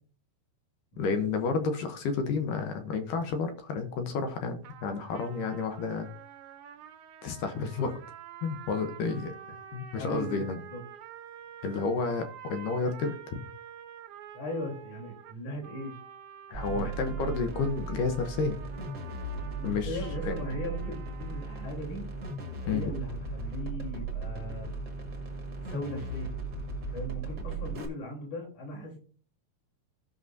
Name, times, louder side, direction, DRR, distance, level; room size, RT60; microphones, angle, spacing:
voice 1, 1.0-6.1 7.2-8.0 8.4-9.3 9.7-10.6 11.6-13.4 16.5-18.6 19.6-19.9 20.3-20.4 22.7-22.9, left 4 dB, 70° left, 7 dB, 2.3 m, -31 dB
sound 1, 4.6-21.8, right 9 dB, 70° right, 2.0 m, -48 dB
voice 2, 10.0-10.8 14.3-16.0 16.6-17.4 19.6-22.0 22.6-24.7 25.6-26.4 26.9-29.0, equal, 50° left, -1 dB, 4.8 m, -38 dB
sound 2, 16.5-27.8, right 2 dB, 40° right, 1.3 m, -37 dB
17.0 x 5.9 x 2.7 m, 0.40 s
omnidirectional pair, 4.3 m